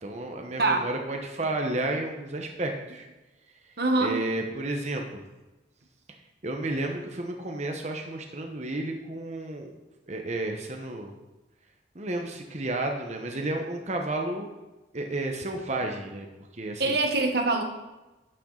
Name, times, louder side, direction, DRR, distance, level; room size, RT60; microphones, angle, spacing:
voice 1, 0.0-3.1 4.0-5.2 6.4-9.7 10.1-11.1 11.9-14.5 14.9-16.3 16.5-17.0, right 2 dB, 40° right, 2 dB, 1.0 m, -32 dB
voice 2, 3.8-4.1 16.8-17.6, right 2 dB, 60° right, 4 dB, 1.1 m, -24 dB
10.5 x 9.1 x 3.9 m, 1.1 s
head